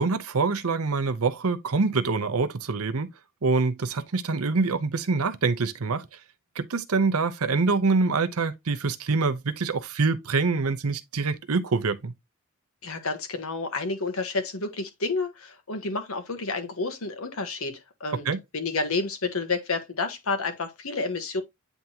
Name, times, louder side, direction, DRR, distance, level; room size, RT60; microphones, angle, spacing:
voice 1, 0.0-3.1 3.4-6.0 6.6-12.1 18.3-18.4, right 4 dB, 85° right, 0.8 m, -25 dB
voice 2, 12.8-18.3 18.5-21.4, left 3 dB, 70° left, 1.3 m, -30 dB
9.1 x 3.6 x 2.9 m
head